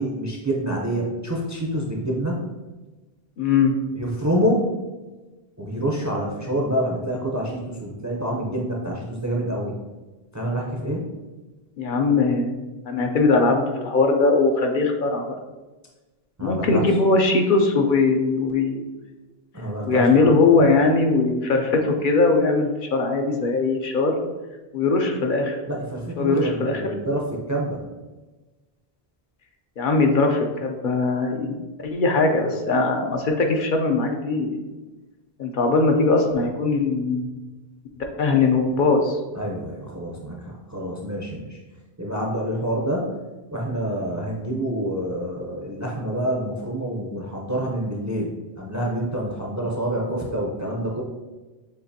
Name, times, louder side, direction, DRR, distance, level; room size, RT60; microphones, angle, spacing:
voice 1, 0.0-2.4 3.9-4.7 5.6-9.7 10.3-11.0 16.4-16.7 19.5-20.3 20.6-20.8 25.7-27.2 27.5-27.8 39.3-41.6 42.0-43.1 43.5-48.3 48.6-51.0, right 1 dB, 25° right, -2 dB, 0.4 m, -27 dB
voice 2, 3.4-3.8 11.8-15.4 16.4-18.9 19.9-24.2 24.7-25.6 26.2-26.9 29.8-34.6 35.4-37.3 38.0-39.2, left 3 dB, 60° left, 3 dB, 0.7 m, -20 dB
6.8 x 2.5 x 2.7 m, 1.2 s
omnidirectional pair, 1.0 m